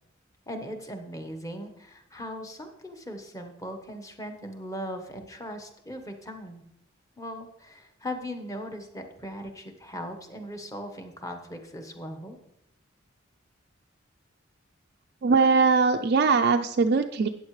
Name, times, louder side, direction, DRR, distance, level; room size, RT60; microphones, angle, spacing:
voice 1, 0.5-6.6 7.2-12.4, equal, 15° left, 5 dB, 1.2 m, -39 dB
voice 2, 15.2-17.3, right 4 dB, 50° right, 5 dB, 0.4 m, -21 dB
13.5 x 9.1 x 3.2 m, 0.80 s
head